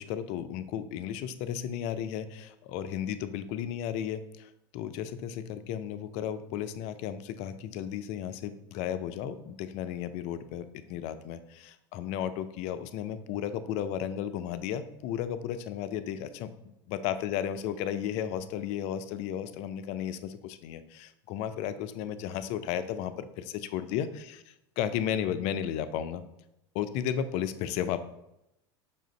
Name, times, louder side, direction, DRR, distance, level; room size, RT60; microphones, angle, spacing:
voice 1, 0.0-24.4 24.8-26.2 26.7-28.0, left 9 dB, 55° left, 12 dB, 0.4 m, -34 dB
5.4 x 2.5 x 3.9 m, 0.85 s
hypercardioid pair, 95°, 13 cm